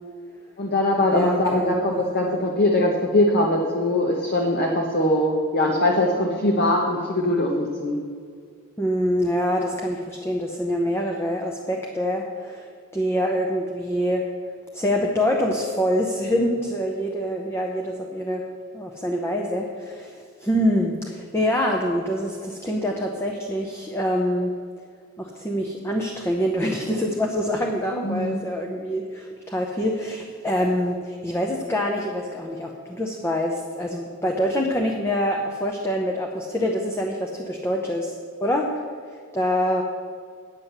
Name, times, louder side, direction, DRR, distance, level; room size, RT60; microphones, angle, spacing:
voice 1, 0.6-8.0 28.0-28.4, left 1 dB, 45° left, 0 dB, 1.1 m, -21 dB
voice 2, 1.1-1.8 8.8-12.7 12.9-14.2 14.7-18.4 18.7-24.5 25.2-38.8 39.3-39.8, equal, 10° left, 1 dB, 0.7 m, -25 dB
9.7 x 7.6 x 6.6 m, 2.2 s
head